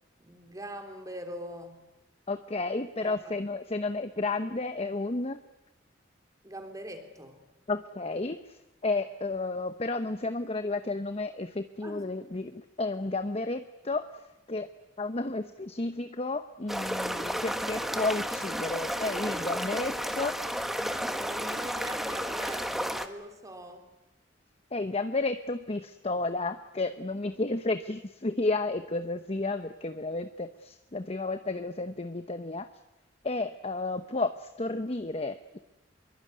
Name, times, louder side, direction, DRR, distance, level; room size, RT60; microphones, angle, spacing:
voice 1, 0.2-1.9 3.0-3.4 6.4-7.4 11.8-12.1 20.8-23.9, right 1 dB, 20° right, 6 dB, 3.4 m, -42 dB
voice 2, 2.3-5.4 7.7-14.2 14.5-14.7 15.0-20.4 24.7-32.7 33.2-35.6, left 2 dB, 35° left, 10 dB, 0.9 m, -32 dB
sound 1, 16.7-23.1, equal, ahead, 1.5 m, -32 dB
25.0 x 23.0 x 9.6 m, 0.97 s
head